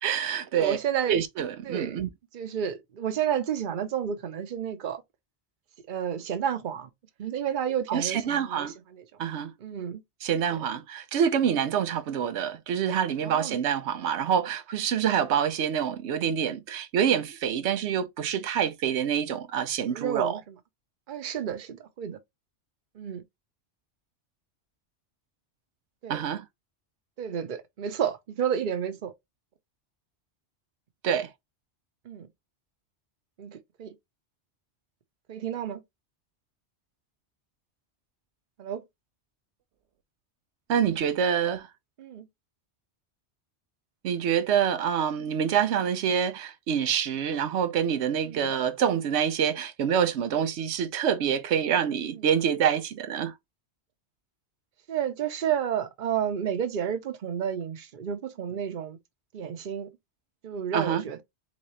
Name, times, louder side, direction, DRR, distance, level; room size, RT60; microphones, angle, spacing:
voice 1, 0.0-0.8 1.1-2.1 7.9-8.7 9.2-9.5 10.2-20.4 26.1-26.4 31.0-31.3 40.7-41.7 44.0-53.3 60.7-61.1, right 8 dB, 80° right, 0.9 m, -26 dB
voice 2, 0.5-1.1 1.6-2.0 2.3-5.0 5.9-6.9 7.2-8.7 8.9-9.0 9.6-10.0 10.5-10.6 13.2-13.6 19.9-20.4 21.1-22.2 23.0-23.2 26.0-26.2 27.2-29.1 32.1-32.3 33.4-33.9 35.3-35.8 38.6-38.8 42.0-42.3 48.2-48.5 52.1-52.2 54.9-59.0 59.3-59.9 60.4-61.2, right 8 dB, 50° right, 0.8 m, -31 dB
4.1 x 3.7 x 3.1 m
omnidirectional pair, 1.1 m